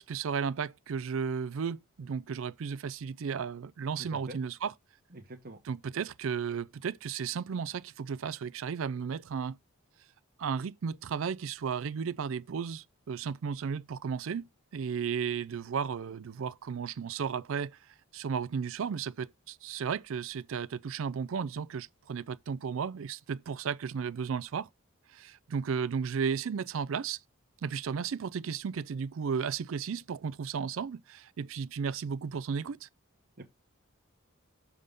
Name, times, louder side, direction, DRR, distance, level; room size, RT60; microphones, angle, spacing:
voice 1, 0.0-4.7 5.6-9.6 10.4-17.8 18.1-24.7 25.1-27.2 27.6-32.9, right 6 dB, 65° right, 0.4 m, -34 dB
voice 2, 4.0-4.4 5.1-5.6 33.4-33.5, right 1 dB, 45° right, 1.0 m, -45 dB
6.7 x 3.7 x 5.2 m
head